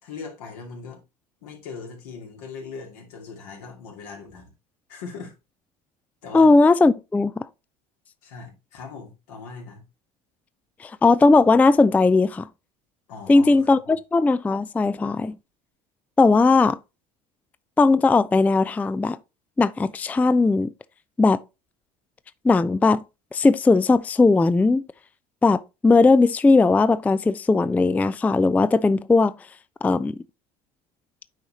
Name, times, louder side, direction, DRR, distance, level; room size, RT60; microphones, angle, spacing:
voice 1, 0.0-1.0 1.4-4.5 4.9-5.3 6.2-6.5 8.2-9.8 13.1-14.0, left 5 dB, 75° left, 2.6 m, -40 dB
voice 2, 6.3-7.4 10.8-12.5 13.3-15.4 16.2-16.8 17.8-19.2 19.6-20.7 21.2-21.4 22.4-23.0 23.3-24.8 25.4-29.3 29.8-30.2, left 3 dB, 10° left, 0.3 m, -18 dB
9.1 x 4.9 x 2.9 m
hypercardioid pair, 75°, 20 cm